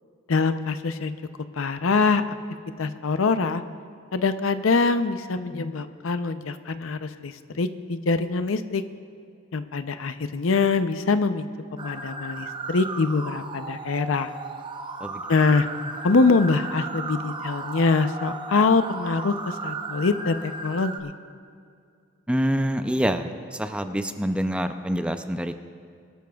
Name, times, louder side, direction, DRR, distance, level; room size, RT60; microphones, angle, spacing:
voice 1, 0.3-1.1 1.6-2.2 2.8-3.6 4.1-8.8 9.5-11.5 11.8-14.3 15.3-15.7 16.0-21.1, left 4 dB, 90° left, 11 dB, 0.6 m, -24 dB
sound 1, 11.8-21.0, right 3 dB, 25° right, 0.8 m, -35 dB
voice 2, 22.3-25.6, equal, 5° right, 8 dB, 0.5 m, -26 dB
22.0 x 12.5 x 2.4 m, 2.3 s
head